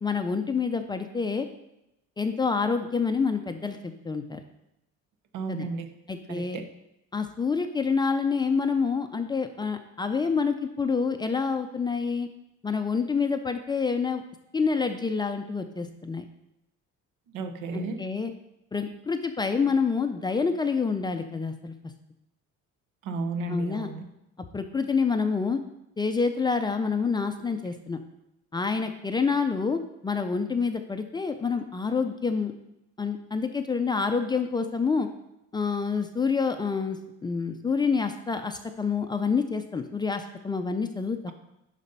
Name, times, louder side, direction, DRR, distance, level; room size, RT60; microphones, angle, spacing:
voice 1, 0.0-1.5 2.2-4.4 5.5-5.7 6.1-6.6 7.1-12.3 12.6-14.2 14.5-16.2 17.7-18.3 18.7-21.7 23.5-23.9 24.5-25.6 26.0-28.0 28.5-32.5 33.0-35.1 35.5-41.3, left 5 dB, 15° left, 6 dB, 0.4 m, -27 dB
voice 2, 5.3-6.0 6.3-6.7 17.3-18.0 23.0-24.1, right 3 dB, 80° right, 7 dB, 1.1 m, -33 dB
11.0 x 4.1 x 5.4 m, 0.87 s
cardioid pair, 165°, 30 cm